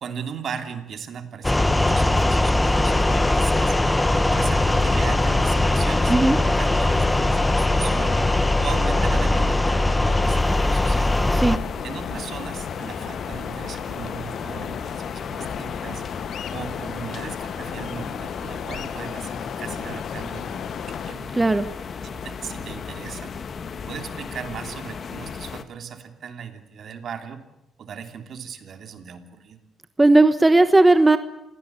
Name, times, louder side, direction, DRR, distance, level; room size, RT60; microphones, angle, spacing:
voice 1, 0.0-3.8 4.3-6.1 6.6-8.2 8.6-11.2 11.8-16.1 16.5-21.3 22.1-23.3 23.9-27.4 27.8-29.6, right 7 dB, 60° right, 6 dB, 3.0 m, -37 dB
sound 1, 1.4-11.6, left 2 dB, 10° left, 1.1 m, -20 dB
sound 2, 2.6-21.1, left 8 dB, 70° left, 1.4 m, -35 dB
sound 3, 10.2-25.6, left 6 dB, 50° left, 1.8 m, -35 dB
voice 2, 21.4-21.7 30.0-31.2, right 2 dB, 15° right, 10 dB, 1.2 m, -16 dB
27.0 x 17.5 x 8.4 m, 0.89 s
cardioid pair, 90°, 0 cm